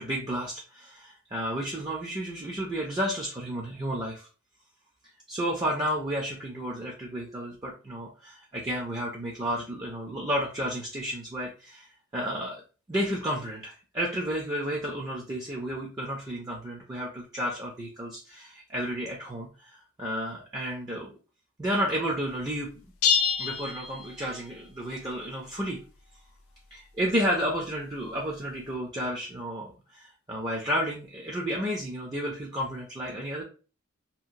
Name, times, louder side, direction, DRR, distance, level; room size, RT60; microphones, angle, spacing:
voice 1, 0.0-4.3 5.3-12.6 12.9-21.1 21.6-22.7 23.4-25.8 26.7-33.4, equal, 20° right, -2 dB, 0.4 m, -32 dB
sound 1, 23.0-24.6, left 6 dB, 70° left, 0.4 m, -27 dB
2.8 x 2.1 x 2.5 m, 0.35 s
head